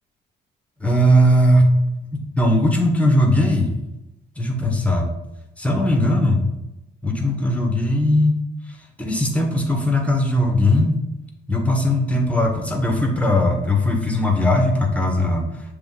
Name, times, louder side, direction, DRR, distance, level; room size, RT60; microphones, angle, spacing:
voice 1, 0.8-1.7 2.1-3.7 4.4-5.1 5.6-6.4 7.0-8.3 9.0-11.0 11.5-15.5, left 1 dB, 5° left, 1 dB, 1.3 m, -18 dB
6.9 x 3.4 x 4.0 m, 0.93 s
cardioid pair, 90°, 20 cm